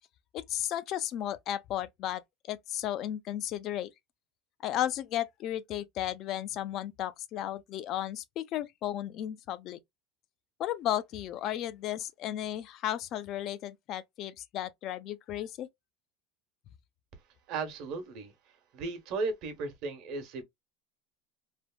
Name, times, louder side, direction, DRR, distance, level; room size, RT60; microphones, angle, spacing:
voice 1, 0.3-2.2 2.5-3.9 4.6-9.8 10.6-15.7, left 12 dB, 50° left, 0.4 m, -34 dB
voice 2, 17.5-18.3 18.7-20.4, right 3 dB, 60° right, 1.0 m, -35 dB
3.2 x 2.0 x 2.2 m
supercardioid pair, 120°, 0 cm